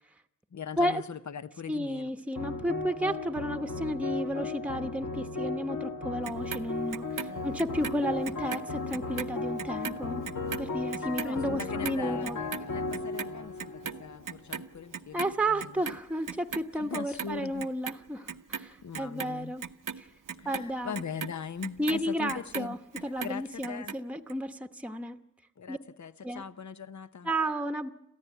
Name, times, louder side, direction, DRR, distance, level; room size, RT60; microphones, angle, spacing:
voice 1, 0.5-2.1 7.3-7.7 11.0-15.8 16.7-17.6 18.8-19.5 20.4-22.8 23.2-24.0 25.6-27.3, left 6 dB, 65° left, 0.8 m, -41 dB
voice 2, 1.7-10.2 10.6-12.4 15.1-19.7 20.0-20.1 20.4-21.0 21.8-25.2 25.7-25.8 26.2-26.4 27.2-27.9, equal, 5° right, 1.0 m, -32 dB
sound 1, 2.4-14.8, left 3 dB, 90° left, 1.9 m, -36 dB
Clock, 6.2-8.6 8.9-15.3 15.6-16.7 16.9-17.9 18.3-22.7 23.0-24.0 24.3-24.4, right 7 dB, 85° right, 0.8 m, -38 dB
27.0 x 14.5 x 9.3 m
wide cardioid pair, 85°, 31 cm